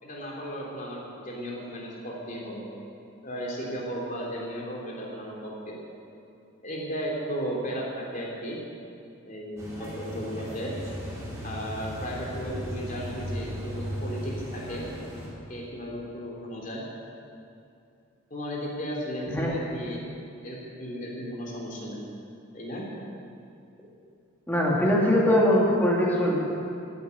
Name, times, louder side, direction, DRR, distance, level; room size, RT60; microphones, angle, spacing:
voice 1, 0.0-2.7 3.2-5.9 6.6-8.6 9.3-10.7 11.4-14.9 15.5-16.8 18.3-20.0 20.4-22.0 22.5-22.8, equal, 40° left, -3 dB, 3.1 m, -35 dB
sound 1, 9.6-15.3, equal, 15° right, 3.5 m, -36 dB
voice 2, 24.5-26.4, left 1 dB, 10° left, -4 dB, 2.4 m, -22 dB
15.5 x 8.5 x 8.4 m, 2.5 s
head